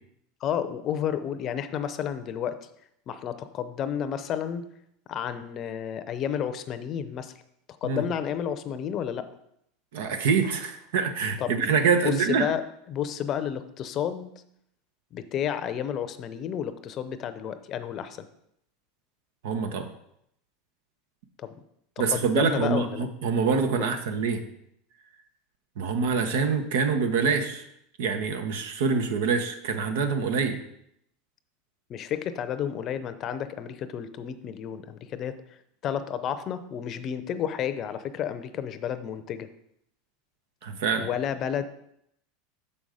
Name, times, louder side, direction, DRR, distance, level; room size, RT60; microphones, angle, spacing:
voice 1, 0.4-2.7 3.1-4.7 5.1-7.3 7.8-9.3 11.4-11.5 12.0-12.6 12.9-14.3 15.1-18.3 21.4-21.5 22.0-23.0 23.8-23.9 31.9-35.6 35.8-39.5 41.0-41.6, left 9 dB, 45° left, 12 dB, 0.6 m, -31 dB
voice 2, 9.9-12.4 19.4-19.9 22.0-24.4 25.8-27.6 28.0-30.6 40.6-41.1, right 5 dB, 75° right, 7 dB, 1.0 m, -25 dB
6.9 x 5.4 x 5.0 m, 0.75 s
hypercardioid pair, 100°, 0 cm